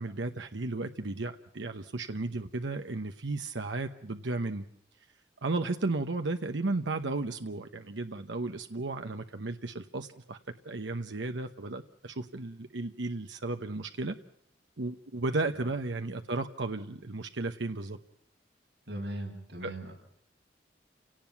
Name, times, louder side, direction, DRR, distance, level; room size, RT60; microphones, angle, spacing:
voice 1, 0.0-4.6 5.4-10.4 10.6-14.2 14.8-18.0 19.6-19.7, right 2 dB, 90° right, 6 dB, 1.0 m, -34 dB
voice 2, 18.9-19.9, right 1 dB, 70° right, 0 dB, 7.6 m, -39 dB
29.5 x 18.0 x 5.9 m, 0.73 s
head